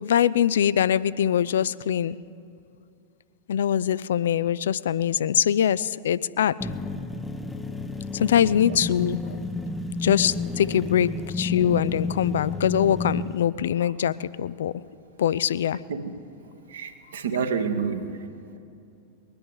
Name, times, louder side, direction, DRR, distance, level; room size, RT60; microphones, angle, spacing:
voice 1, 0.0-2.2 3.5-6.5 8.1-9.4 10.0-14.7 15.2-15.8, left 9 dB, 60° left, 18 dB, 0.3 m, -23 dB
sound 1, 6.6-13.4, left 3 dB, 10° left, 0.7 m, -31 dB
voice 2, 16.7-18.1, right 6 dB, 65° right, 7 dB, 1.0 m, -28 dB
21.0 x 10.0 x 5.4 m, 2.5 s
figure-of-eight pair, 90°, 0 cm